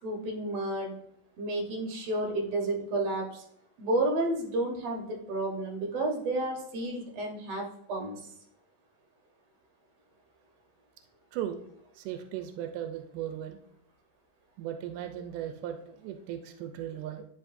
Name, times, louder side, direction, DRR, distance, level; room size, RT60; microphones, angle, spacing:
voice 1, 0.0-0.9 1.4-3.4 3.8-8.2, right 2 dB, 60° right, 1 dB, 2.3 m, -31 dB
voice 2, 12.0-13.6 14.6-17.2, right 10 dB, 90° right, 7 dB, 2.2 m, -37 dB
10.0 x 4.9 x 2.6 m, 0.72 s
omnidirectional pair, 3.6 m